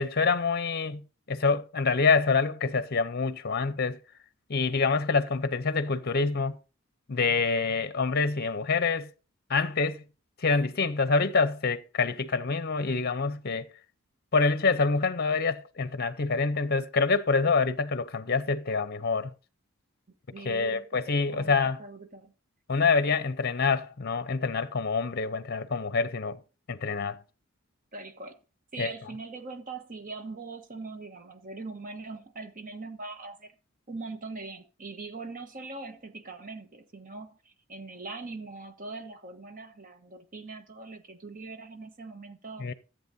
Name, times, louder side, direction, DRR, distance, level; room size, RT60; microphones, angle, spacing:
voice 1, 0.0-4.0 4.5-6.6 7.1-9.1 9.5-10.0 10.4-13.7 14.3-19.3 20.4-21.8 22.7-26.4 26.7-27.2 28.8-28.9 42.6-42.7, left 4 dB, 50° left, 0.7 m, -26 dB
voice 2, 20.3-22.3 27.9-28.4 28.7-33.5 33.9-42.7, right 3 dB, 40° right, 1.2 m, -41 dB
14.5 x 8.0 x 2.7 m
head